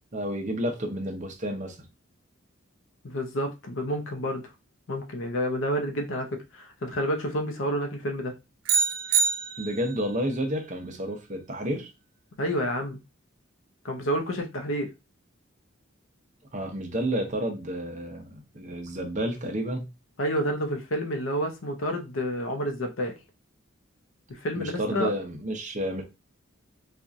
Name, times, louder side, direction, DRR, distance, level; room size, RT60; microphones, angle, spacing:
voice 1, 0.1-1.8 9.6-11.9 16.5-19.9 24.5-26.0, equal, 35° right, 0.7 m, -30 dB
voice 2, 3.0-4.5 4.9-8.3 12.4-13.0 13.8-14.9 20.2-23.1 24.3-25.1, equal, 70° left, 0.7 m, -29 dB
sound 1, 8.7-10.1, right 6 dB, 65° right, 0.4 m, -25 dB
4.4 x 2.4 x 2.5 m
head